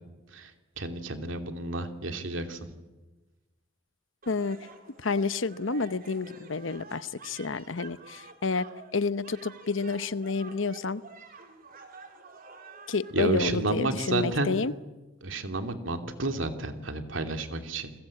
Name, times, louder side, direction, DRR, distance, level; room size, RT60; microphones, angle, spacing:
voice 1, 0.3-2.6 13.1-14.6 15.2-17.9, right 2 dB, 75° right, 6 dB, 2.8 m, -31 dB
sound 1, 4.2-13.1, right 4 dB, 45° right, 3.6 m, -49 dB
voice 2, 4.3-4.6 5.0-11.0 12.9-14.7, left 4 dB, 75° left, 15 dB, 0.9 m, -30 dB
29.5 x 21.5 x 8.7 m, 1.2 s
head